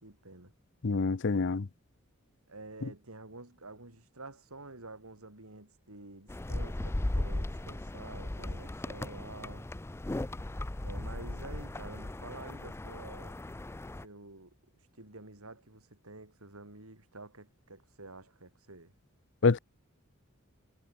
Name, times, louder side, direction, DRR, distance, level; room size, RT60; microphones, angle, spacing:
voice 1, 0.0-0.5 2.5-9.7 10.8-13.5 13.8-14.6 15.0-18.9, right 2 dB, 85° right, 4.6 m, -49 dB
voice 2, 0.8-1.7 2.8-2.9 19.4-19.6, left 4 dB, 55° left, 0.6 m, -26 dB
sound 1, 6.3-14.0, left 1 dB, 10° left, 0.4 m, -37 dB
head